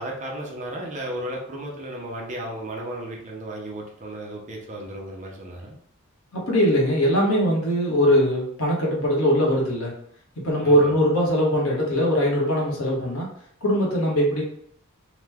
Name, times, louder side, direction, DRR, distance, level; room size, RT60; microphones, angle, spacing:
voice 1, 0.0-5.8 10.6-10.9, right 1 dB, 35° right, -1 dB, 0.6 m, -34 dB
voice 2, 6.3-9.9 10.4-13.3 13.6-14.4, equal, 75° left, -3 dB, 1.0 m, -21 dB
2.9 x 2.2 x 3.4 m, 0.65 s
head